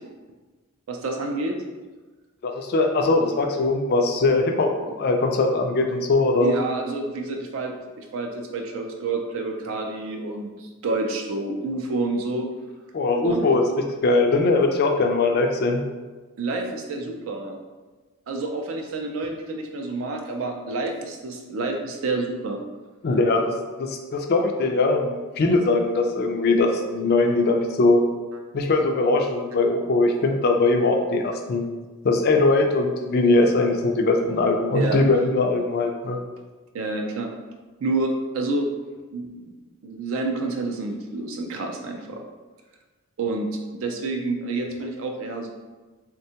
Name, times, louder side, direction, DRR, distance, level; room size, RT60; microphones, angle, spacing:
voice 1, 0.9-1.6 4.8-4.9 6.4-12.5 13.2-13.5 16.4-17.6 18.3-22.6 34.7-35.2 36.7-37.3 37.8-38.7 39.1-39.5 39.8-42.2 43.2-43.5 43.7-45.5, right 3 dB, 65° right, 3 dB, 0.4 m, -28 dB
voice 2, 2.4-4.7 5.0-6.5 12.9-15.8 23.0-23.5 23.8-28.0 28.5-31.7 32.0-36.2, left 3 dB, 45° left, 3 dB, 0.3 m, -21 dB
3.5 x 2.2 x 2.8 m, 1.3 s
head